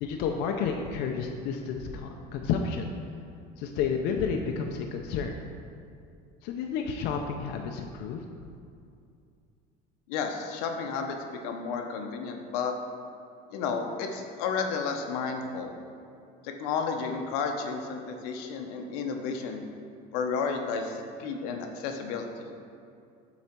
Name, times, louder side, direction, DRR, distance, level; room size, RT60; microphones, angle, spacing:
voice 1, 0.0-2.9 3.6-5.4 6.4-8.2, left 6 dB, 60° left, 3 dB, 0.5 m, -31 dB
voice 2, 10.1-12.7 13.5-15.7 16.4-19.6 20.1-22.3, left 5 dB, 85° left, 4 dB, 0.8 m, -32 dB
7.8 x 4.2 x 4.4 m, 2.4 s
cardioid pair, 150°, 19 cm